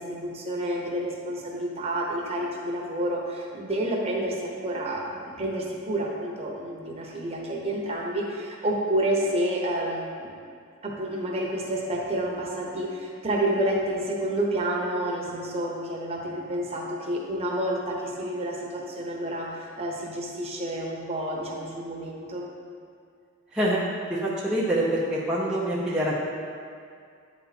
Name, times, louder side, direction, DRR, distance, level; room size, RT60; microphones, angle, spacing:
voice 1, 0.0-10.3 10.8-22.5, right 1 dB, 30° right, -2 dB, 1.0 m, -29 dB
voice 2, 24.1-26.1, right 1 dB, 5° right, -8 dB, 0.6 m, -25 dB
9.4 x 4.1 x 4.2 m, 2.3 s
head